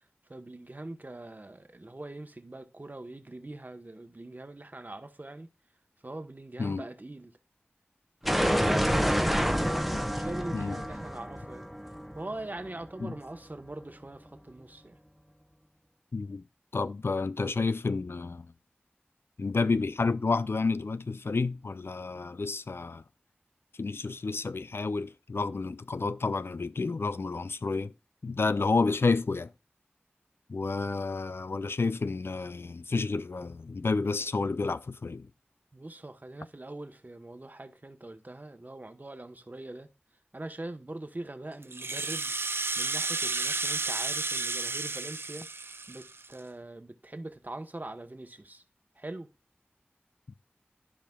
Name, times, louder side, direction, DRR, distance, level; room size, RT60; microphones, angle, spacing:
voice 1, 0.3-5.5 6.0-7.4 8.2-9.5 9.9-11.7 12.1-15.0 35.7-39.9 40.3-42.3 42.8-48.6 48.9-49.3, right 2 dB, 50° right, 1.1 m, -42 dB
sound 1, 8.2-13.0, equal, ahead, 0.8 m, -28 dB
voice 2, 16.1-16.4 16.7-18.5 19.4-23.0 23.8-27.9 28.2-29.5 30.5-35.3, left 4 dB, 80° left, 0.3 m, -30 dB
Rattle (instrument), 41.6-46.4, right 3 dB, 80° right, 0.4 m, -32 dB
13.5 x 5.0 x 2.3 m
wide cardioid pair, 40°, 4 cm